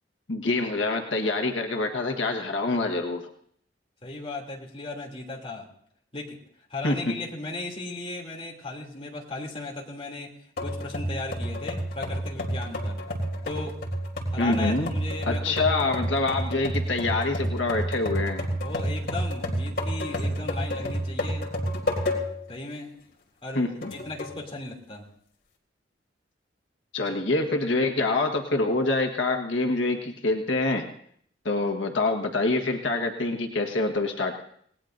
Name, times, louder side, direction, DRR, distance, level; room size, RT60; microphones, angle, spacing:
voice 1, 0.3-3.3 6.8-7.0 14.4-14.9 15.3-18.5 23.5-23.9 26.9-30.9 31.4-34.4, left 2 dB, 85° left, 3 dB, 1.4 m, -26 dB
voice 2, 4.0-5.7 6.1-6.4 6.7-10.3 10.6-13.0 13.4-13.7 14.3-15.6 18.6-21.7 22.5-22.9 23.4-25.1 27.1-27.2, left 2 dB, 30° left, -1 dB, 2.8 m, -36 dB
sound 1, 10.6-22.5 23.0-23.1 23.8-24.4, equal, 60° left, 3.3 m, -30 dB
27.0 x 19.0 x 2.6 m, 0.65 s
head